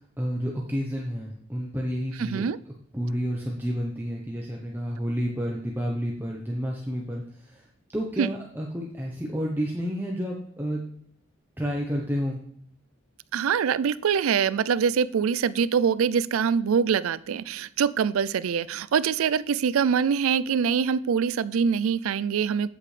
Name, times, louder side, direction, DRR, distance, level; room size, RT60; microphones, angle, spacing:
voice 1, 0.0-2.5 2.9-7.7 7.9-10.8 11.6-12.4, equal, 10° right, -1 dB, 0.8 m, -30 dB
voice 2, 2.2-2.6 8.2-8.3 13.3-22.7, right 7 dB, 90° right, 18 dB, 0.4 m, -24 dB
8.7 x 8.2 x 3.3 m, 0.69 s
head